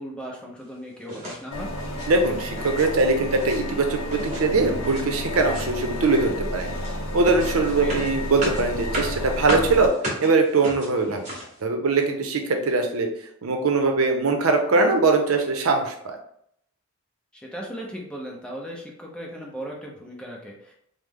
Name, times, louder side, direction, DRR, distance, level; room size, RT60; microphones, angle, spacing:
voice 1, 0.0-1.7 7.8-8.0 11.0-11.2 17.3-20.7, equal, 5° left, -1 dB, 0.5 m, -37 dB
sound 1, 1.1-1.4 1.7-2.1 2.4-2.9 3.1-3.6 4.1-5.1 5.3-5.8 6.1-11.6, equal, 35° right, 1.0 m, -34 dB
sound 2, 1.5-9.9, left 1 dB, 65° left, 0.5 m, -31 dB
voice 2, 2.1-6.7 7.1-9.9 10.2-11.2 11.6-13.1 13.4-16.2, right 3 dB, 75° right, 4 dB, 0.6 m, -21 dB
3.1 x 2.0 x 3.5 m, 0.70 s
head